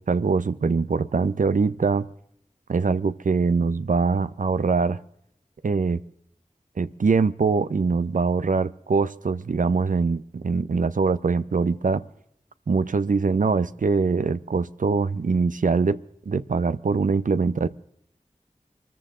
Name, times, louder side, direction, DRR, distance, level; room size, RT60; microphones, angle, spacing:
voice 1, 0.0-2.1 2.7-5.0 5.6-6.0 6.8-12.1 12.7-16.0 16.3-17.7, right 4 dB, 85° right, 14 dB, 0.6 m, -23 dB
23.5 x 14.0 x 3.7 m, 0.71 s
wide cardioid pair, 40°, 13 cm